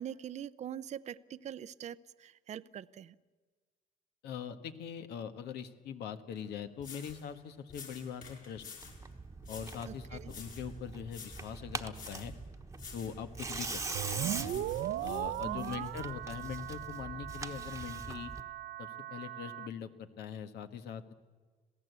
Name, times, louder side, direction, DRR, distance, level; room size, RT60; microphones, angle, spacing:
voice 1, 0.0-3.1 9.9-10.3 15.5-15.8, right 9 dB, 45° right, 15 dB, 0.6 m, -43 dB
voice 2, 4.2-8.6 9.5-12.3 12.9-14.7 15.0-18.3 18.8-21.1, left 8 dB, 75° left, 8 dB, 1.6 m, -42 dB
sound 1, 6.4-6.5 6.8-7.2 7.7-9.0 9.4-9.8 10.3-10.7 11.1-11.5 11.9-12.3 12.7-13.2 13.6-14.0 14.4-15.7, left 6 dB, 55° left, 5.9 m, -50 dB
Tearing, 8.8-18.4, right 4 dB, 15° right, 1.2 m, -43 dB
sound 2, 13.9-19.7, right 12 dB, 75° right, 0.9 m, -38 dB
27.0 x 16.5 x 8.2 m, 1.4 s
cardioid pair, 110°, 17 cm